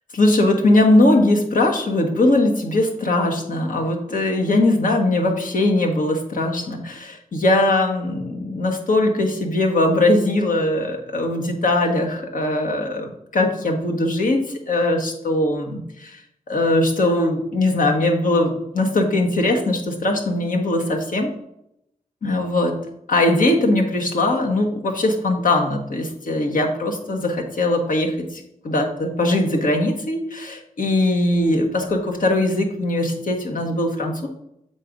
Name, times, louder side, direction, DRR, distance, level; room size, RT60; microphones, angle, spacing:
voice 1, 0.1-16.2 16.5-21.3 22.2-22.8 23.1-34.3, left 2 dB, 70° left, 2 dB, 1.4 m, -20 dB
7.6 x 4.1 x 5.1 m, 0.79 s
wide cardioid pair, 100°, 14 cm